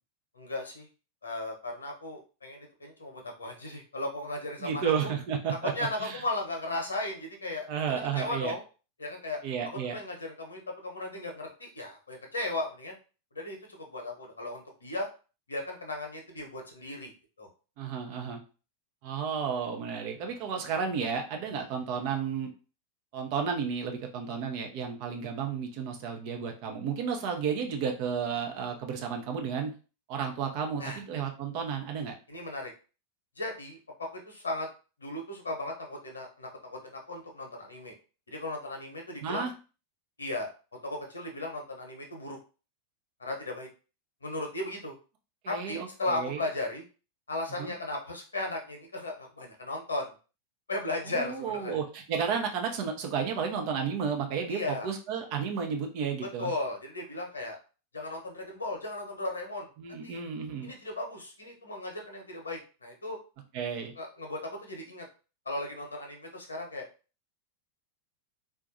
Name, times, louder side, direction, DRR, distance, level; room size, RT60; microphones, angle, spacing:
voice 1, 0.3-0.9 1.2-5.1 5.7-7.7 8.1-8.6 9.0-9.4 9.6-12.9 13.3-15.1 15.5-17.1 17.4-17.5 30.8-31.0 32.3-32.7 33.4-34.7 35.0-37.9 38.3-39.5 40.2-40.5 40.8-42.4 43.2-43.7 44.2-44.9 45.5-46.8 47.3-50.1 50.7-51.8 54.5-54.9 56.4-57.6 57.9-60.2 60.6-63.2 64.0-65.1 65.5-66.9, left 2 dB, 75° left, 2 dB, 0.8 m, -36 dB
voice 2, 4.6-5.7 6.0-6.2 7.7-8.5 9.4-10.0 17.8-18.4 19.0-22.5 23.1-29.7 30.1-32.1 39.2-39.5 45.4-46.4 47.6-47.7 51.1-56.5 59.8-60.7 63.5-63.9, right 6 dB, 45° right, 3 dB, 0.7 m, -32 dB
3.8 x 2.4 x 2.6 m, 0.34 s
figure-of-eight pair, 90°, 0 cm